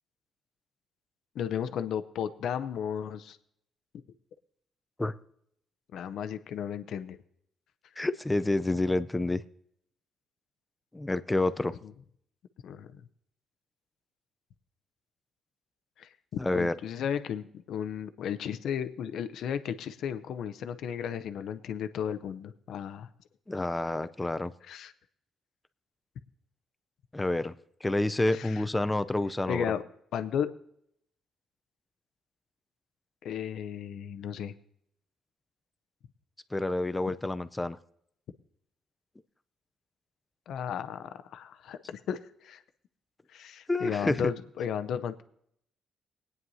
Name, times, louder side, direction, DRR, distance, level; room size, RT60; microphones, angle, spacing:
voice 1, 1.3-3.4 5.9-7.2 11.8-11.9 12.6-13.0 16.0-23.1 24.7-24.9 28.3-28.6 29.5-29.8 30.1-30.5 33.2-34.5 40.5-42.6 43.3-45.2, left 8 dB, 75° left, 10 dB, 0.6 m, -34 dB
voice 2, 8.0-9.4 10.9-11.7 16.4-16.7 23.5-24.5 27.1-27.5 27.8-29.7 36.5-37.8 43.7-44.3, left 2 dB, 15° left, 13 dB, 0.5 m, -28 dB
20.5 x 9.4 x 2.8 m, 0.70 s
cardioid pair, 90°, 0 cm